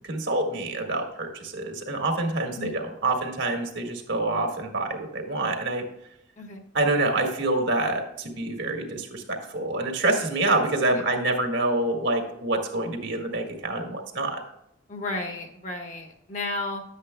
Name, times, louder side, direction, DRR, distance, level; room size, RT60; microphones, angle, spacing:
voice 1, 0.1-5.8 6.7-14.4, right 2 dB, 70° right, 3 dB, 1.8 m, -26 dB
voice 2, 14.9-16.8, left 2 dB, 35° left, 3 dB, 1.2 m, -33 dB
11.5 x 8.3 x 2.2 m, 0.79 s
head